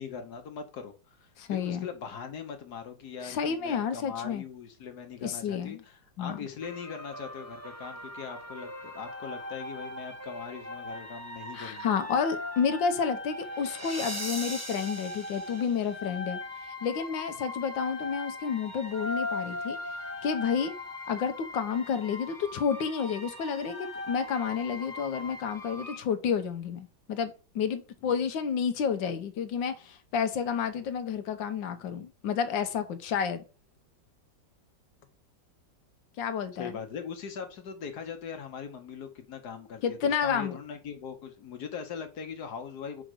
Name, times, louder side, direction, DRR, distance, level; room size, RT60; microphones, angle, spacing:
voice 1, 0.0-12.0 28.0-28.2 31.7-32.0 36.6-43.0, left 6 dB, 65° left, 1.5 m, -41 dB
voice 2, 1.4-1.9 3.2-4.4 5.2-5.8 6.2-6.4 11.5-16.4 16.8-19.8 20.2-20.7 21.1-33.4 36.2-36.8 39.8-40.6, left 6 dB, 85° left, 1.6 m, -30 dB
sound 1, 6.6-26.0, left 1 dB, 15° right, 0.7 m, -39 dB
5.2 x 5.0 x 6.2 m
omnidirectional pair, 2.0 m